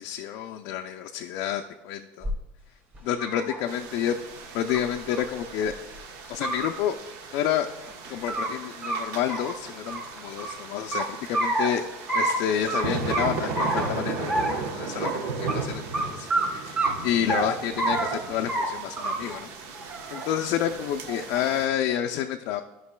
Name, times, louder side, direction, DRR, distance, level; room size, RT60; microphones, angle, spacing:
voice 1, 0.0-2.3 3.0-4.2 4.5-5.7 6.3-7.0 7.3-7.7 8.1-11.8 12.1-16.8 17.0-19.5 20.1-22.6, left 10 dB, 60° left, 4 dB, 0.4 m, -29 dB
sound 1, 2.2-2.3 2.9-3.6 4.7-4.8 5.1-5.2 5.6-5.7 6.2-6.7 7.8-8.5 8.8-9.0 9.3-10.5 10.9-11.7 12.1-12.3 12.7-12.8 13.1-13.9 14.3-14.6 15.0-15.1 15.5-15.6 15.9-16.0 16.3-16.5 16.8-17.4 17.8-18.1 18.5-18.7 19.0-19.4 19.7-20.3 21.1-21.6, right 2 dB, 30° right, 2.0 m, -27 dB
sound 2, 3.7-21.7, right 4 dB, 65° right, 1.0 m, -36 dB
12.5 x 5.3 x 2.2 m, 1.0 s
supercardioid pair, 140°, 7 cm